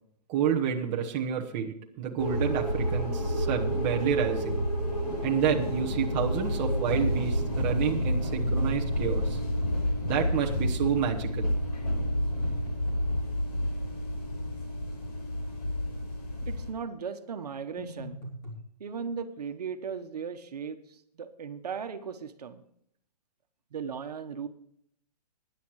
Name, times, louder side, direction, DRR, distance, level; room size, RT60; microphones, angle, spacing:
voice 1, 0.3-4.6 5.2-9.4 10.0-11.5, right 8 dB, 20° right, 0 dB, 1.0 m, -29 dB
sound 1, 2.2-16.7, equal, 65° left, 5.7 m, -29 dB
sound 2, 12.4-13.3 17.8-18.6, equal, 15° left, 3.1 m, -41 dB
voice 2, 16.5-18.2 18.8-20.8 21.2-22.6 23.7-24.5, right 6 dB, 70° right, 8 dB, 1.2 m, -37 dB
20.0 x 10.5 x 3.1 m, 0.70 s
hypercardioid pair, 170°, 21 cm